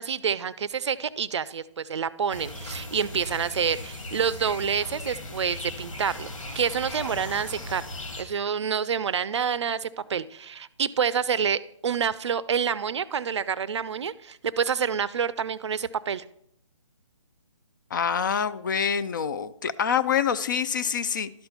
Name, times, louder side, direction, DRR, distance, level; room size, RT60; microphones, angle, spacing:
voice 1, 0.0-6.3 6.6-7.8 8.2-16.2, right 7 dB, 60° right, 18 dB, 0.5 m, -28 dB
sound 1, 2.3-8.2, left 2 dB, 80° left, 2.1 m, -38 dB
voice 2, 17.9-21.3, left 7 dB, 40° left, 14 dB, 0.4 m, -26 dB
11.5 x 4.4 x 5.5 m, 0.74 s
hypercardioid pair, 150°, 17 cm